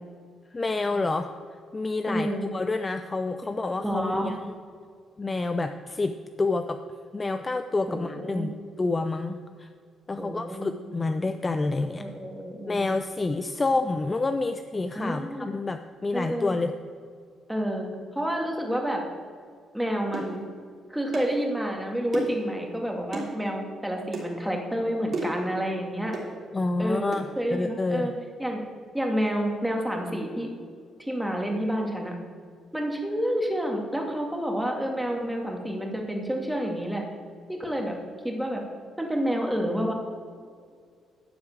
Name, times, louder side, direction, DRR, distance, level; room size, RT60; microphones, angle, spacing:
voice 1, 0.5-1.3 1.7-4.4 5.2-6.8 7.1-8.5 8.8-9.7 10.1-12.0 12.7-16.7 26.5-28.1, left 3 dB, 25° left, 8 dB, 0.5 m, -28 dB
voice 2, 2.1-2.5 3.8-4.3 7.9-8.5 10.2-10.8 12.0-12.9 14.9-15.5 16.1-16.5 17.5-19.0 19.7-20.4 20.9-26.2 26.8-28.1 28.4-28.6 28.9-30.5 31.0-32.2 32.7-37.0 37.5-38.0 38.2-38.6 39.0-39.9, equal, 5° right, 1 dB, 2.1 m, -29 dB
sound 1, 20.1-20.3 21.1-21.4 22.1-22.4 23.1-23.3 24.1-24.3 25.1-25.4 26.1-26.3 27.1-27.3, right 2 dB, 50° right, 3.4 m, -32 dB
12.5 x 4.7 x 8.6 m, 2.1 s
cardioid pair, 90°, 0 cm